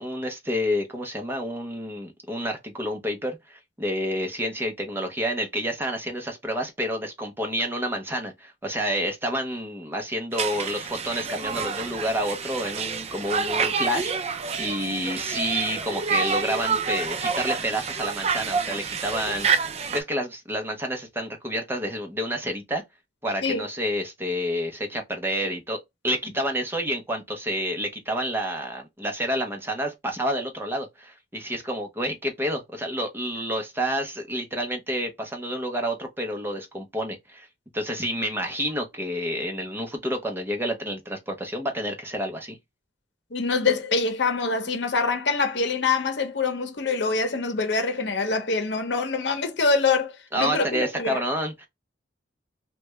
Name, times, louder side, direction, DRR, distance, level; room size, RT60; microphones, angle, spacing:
voice 1, 0.0-19.5 19.9-22.8 23.2-25.8 26.0-37.5 37.7-42.6 50.3-51.7, equal, 10° right, 0.8 m, -29 dB
Conversation, 10.3-20.0, right 5 dB, 35° right, 0.4 m, -28 dB
voice 2, 43.3-51.2, left 4 dB, 70° left, 0.8 m, -25 dB
3.2 x 2.3 x 3.1 m
head